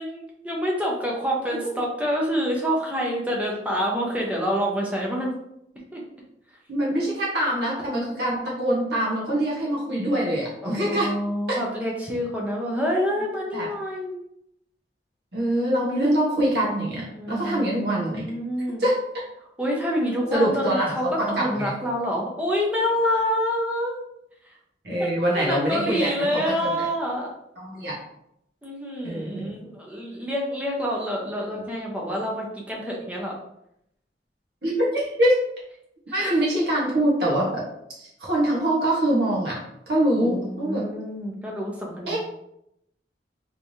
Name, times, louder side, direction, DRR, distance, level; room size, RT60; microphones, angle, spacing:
voice 1, 0.0-5.3 5.9-6.0 10.6-14.2 17.1-18.8 19.6-21.0 21.4-23.9 25.0-27.3 28.6-33.3 36.2-36.3 40.2-42.2, equal, 10° right, -2 dB, 0.7 m, -27 dB
voice 2, 6.7-11.1 11.5-11.6 13.5-13.7 15.3-18.3 18.8-19.0 20.3-21.7 24.8-26.9 27.6-27.9 29.0-29.5 31.5-31.6 32.1-32.2 34.6-35.4 36.1-37.7 38.0-39.6 39.9-40.9 42.1-42.2, right 1 dB, 65° right, -4 dB, 1.3 m, -24 dB
3.4 x 3.2 x 2.7 m, 0.78 s
head